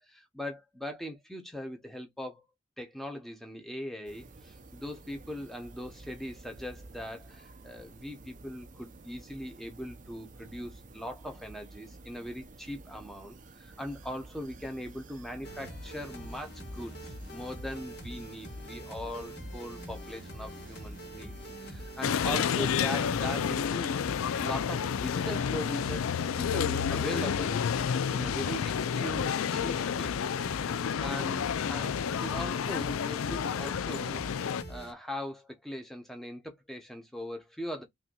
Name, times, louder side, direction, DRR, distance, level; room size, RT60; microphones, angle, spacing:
voice 1, 0.0-2.4 2.8-24.0 24.4-26.0 26.3-30.2 31.0-37.8, equal, ahead, 1.0 m, -40 dB
sound 1, 4.0-23.6, right 2 dB, 40° right, 0.6 m, -51 dB
sound 2, 15.4-34.9, equal, 50° left, 1.5 m, -44 dB
sound 3, 22.0-34.6, left 7 dB, 80° left, 0.4 m, -30 dB
5.6 x 2.8 x 2.3 m
head